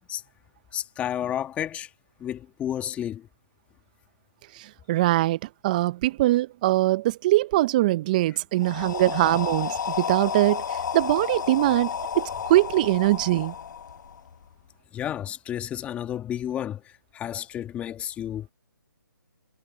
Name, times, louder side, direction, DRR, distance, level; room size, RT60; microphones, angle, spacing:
voice 1, 0.7-1.9 2.2-3.3 14.9-16.8 17.1-18.5, left 10 dB, 10° left, 1.9 m, -31 dB
voice 2, 4.6-13.5, right 17 dB, 20° right, 0.5 m, -22 dB
sound 1, 8.6-14.5, left 7 dB, 55° left, 1.3 m, -32 dB
hypercardioid pair, 155°, 12 cm